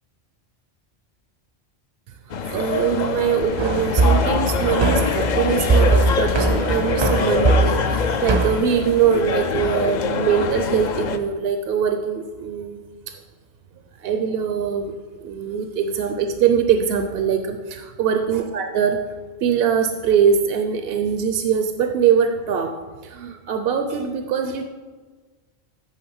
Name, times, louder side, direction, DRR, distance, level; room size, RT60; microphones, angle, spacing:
sound 1, 2.3-11.2, left 5 dB, 55° left, 0.6 m, -24 dB
voice 1, 2.5-12.8 13.1-13.2 14.0-19.1 19.4-24.7, right 7 dB, 70° right, 6 dB, 0.8 m, -22 dB
sound 2, 3.6-8.6, right 2 dB, 35° right, 0.5 m, -21 dB
11.0 x 3.7 x 7.0 m, 1.4 s
omnidirectional pair, 1.1 m